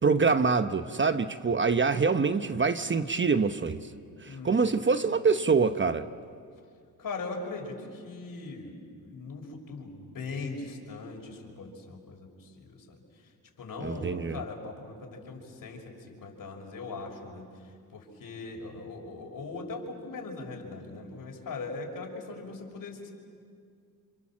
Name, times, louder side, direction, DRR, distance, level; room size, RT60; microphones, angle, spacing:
voice 1, 0.0-3.9 4.2-6.1 13.8-14.4, right 4 dB, 30° right, 1.0 m, -25 dB
voice 2, 4.2-4.9 7.0-13.0 13.6-23.1, left 3 dB, 55° left, 6.1 m, -40 dB
28.5 x 26.5 x 7.6 m
supercardioid pair, 70°, 38 cm